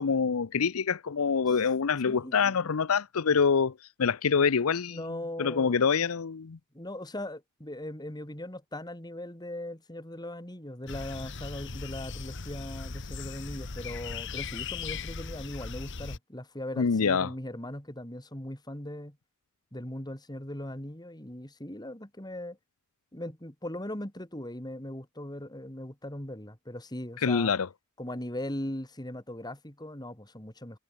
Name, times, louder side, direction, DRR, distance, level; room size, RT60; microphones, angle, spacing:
voice 1, 0.0-5.0 5.4-6.6 16.8-17.3 27.2-27.7, left 5 dB, 85° left, 0.6 m, -26 dB
voice 2, 2.1-2.6 4.9-5.8 6.7-19.2 19.7-22.6 23.1-27.5 28.0-30.8, left 1 dB, 20° left, 3.7 m, -39 dB
sound 1, 10.9-16.2, left 4 dB, 60° left, 1.3 m, -38 dB
head